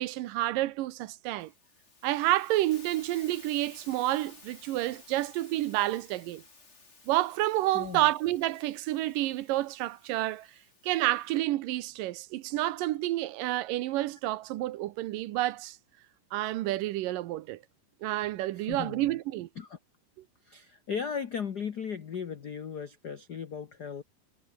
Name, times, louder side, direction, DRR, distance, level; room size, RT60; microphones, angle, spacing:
voice 1, 0.0-1.5 2.0-6.4 7.1-10.5 10.8-15.8 16.3-17.6 18.0-19.5, right 16 dB, 90° right, 2.6 m, -29 dB
Hiss, 1.4-11.4, left 3 dB, 20° left, 3.1 m, -55 dB
voice 2, 7.7-8.1 18.5-19.1 19.5-19.8 20.4-24.0, left 7 dB, 85° left, 0.9 m, -37 dB
omnidirectional pair, 3.8 m